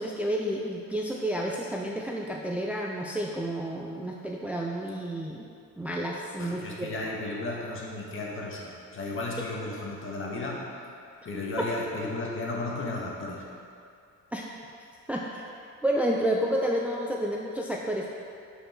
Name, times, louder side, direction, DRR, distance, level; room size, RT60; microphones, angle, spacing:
voice 1, 0.0-5.5 5.8-6.9 14.3-14.4 15.1-15.4 15.8-18.1, right 1 dB, 5° right, -1 dB, 0.5 m, -30 dB
voice 2, 6.4-10.6 11.2-13.4, left 2 dB, 40° left, -3 dB, 1.7 m, -34 dB
11.0 x 5.1 x 3.8 m, 2.5 s
cardioid pair, 115°, 31 cm